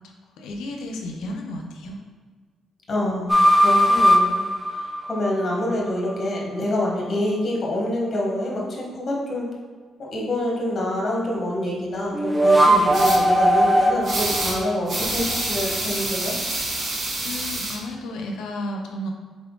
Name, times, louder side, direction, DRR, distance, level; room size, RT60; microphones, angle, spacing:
voice 1, 0.4-2.0 17.2-19.1, left 1 dB, 85° left, 2 dB, 0.5 m, -32 dB
voice 2, 2.9-3.3 3.6-4.4 5.1-9.4 10.0-16.3, left 1 dB, 40° left, -2 dB, 1.3 m, -26 dB
sound 1, 3.3-5.6 12.1-15.5, equal, 10° right, 0.6 m, -19 dB
sound 2, 12.9-13.2 14.0-14.6 14.9-17.8, right 2 dB, 40° right, 1.0 m, -27 dB
3.9 x 3.5 x 3.7 m, 1.5 s
cardioid pair, 90°, 0 cm